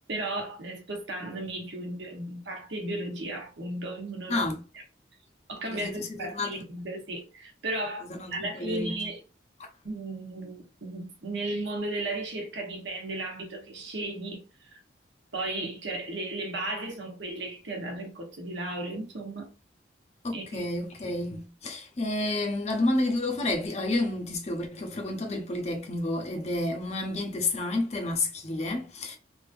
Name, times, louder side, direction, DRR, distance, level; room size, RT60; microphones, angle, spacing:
voice 1, 0.1-4.5 5.5-9.2 9.8-14.8 15.3-19.5 20.3-20.6, right 2 dB, 80° right, 1.0 m, -35 dB
voice 2, 4.3-4.6 5.6-6.6 8.0-9.0 9.6-9.7 20.2-29.2, left 2 dB, 35° left, 0.6 m, -30 dB
3.2 x 2.6 x 2.5 m
head